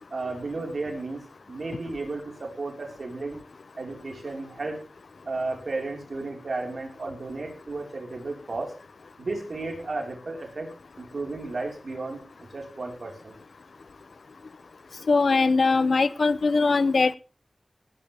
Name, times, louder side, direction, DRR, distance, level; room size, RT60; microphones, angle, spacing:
voice 1, 0.1-1.2 1.5-3.4 3.8-4.8 5.2-8.7 9.2-10.7 11.0-13.4, right 3 dB, 75° right, 2 dB, 4.7 m, -33 dB
voice 2, 15.1-17.2, left 4 dB, 85° left, 17 dB, 0.7 m, -21 dB
18.5 x 12.0 x 3.5 m, 0.33 s
wide cardioid pair, 60°, 0 cm